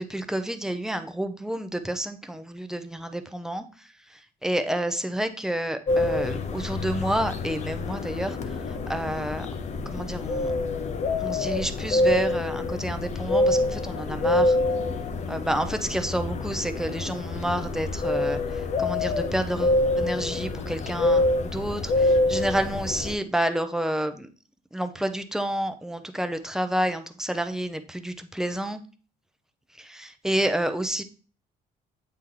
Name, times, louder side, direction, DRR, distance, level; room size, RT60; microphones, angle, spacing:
voice 1, 0.0-9.5 9.9-10.5 11.2-14.6 15.3-24.3 24.7-28.8 29.7-31.0, right 1 dB, 5° right, 8 dB, 0.6 m, -29 dB
sound 1, 5.9-23.1, left 2 dB, 45° left, 0.7 m, -26 dB
8.3 x 3.0 x 3.8 m, 0.38 s
cardioid pair, 110°, 17 cm